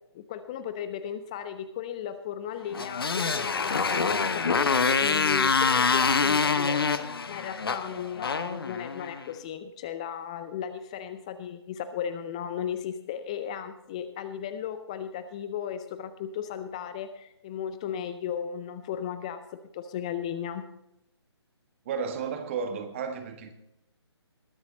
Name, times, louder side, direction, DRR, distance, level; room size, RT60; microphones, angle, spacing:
voice 1, 0.1-6.9 7.3-20.6, left 9 dB, 15° left, 11 dB, 0.4 m, -35 dB
Motorcycle, 2.7-9.2, left 5 dB, 55° left, 0.9 m, -26 dB
voice 2, 21.8-23.5, right 5 dB, 25° right, 6 dB, 1.5 m, -33 dB
21.0 x 7.2 x 4.0 m, 0.88 s
figure-of-eight pair, 140°, 15 cm